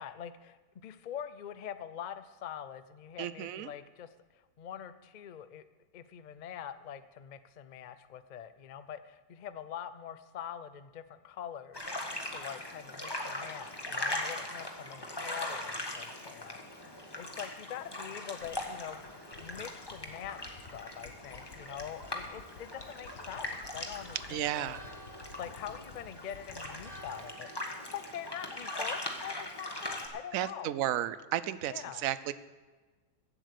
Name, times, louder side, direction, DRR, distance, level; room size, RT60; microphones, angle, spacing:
voice 1, 0.0-5.6 5.9-11.8 12.3-30.9 31.6-32.1, left 9 dB, 90° left, 12 dB, 0.4 m, -44 dB
voice 2, 3.2-3.7 24.3-24.8 30.3-31.7 32.0-32.3, right 12 dB, 65° right, 15 dB, 1.0 m, -33 dB
sound 1, 11.7-30.1, left 1 dB, 15° left, 1.4 m, -40 dB
sound 2, 18.4-27.1, left 5 dB, 70° left, 1.8 m, -52 dB
Church bell, 23.7-29.4, right 1 dB, 25° right, 1.8 m, -55 dB
16.5 x 8.0 x 6.6 m, 1.3 s
omnidirectional pair, 1.7 m